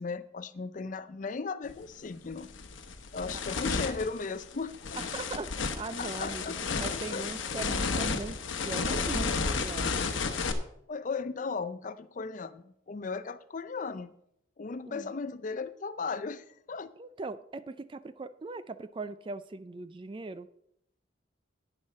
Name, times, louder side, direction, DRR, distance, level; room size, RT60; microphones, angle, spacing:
voice 1, 0.0-2.5 3.1-5.0 6.0-7.6 10.9-14.1 14.6-16.9, left 4 dB, 40° left, 14 dB, 0.4 m, -37 dB
sound 1, 1.7-1.8 2.3-10.5, left 4 dB, 75° left, 0.9 m, -32 dB
voice 2, 4.9-6.4 6.7-9.9 14.8-15.1 17.0-20.5, right 3 dB, 25° right, 14 dB, 0.3 m, -40 dB
11.0 x 8.9 x 4.2 m, 0.75 s
head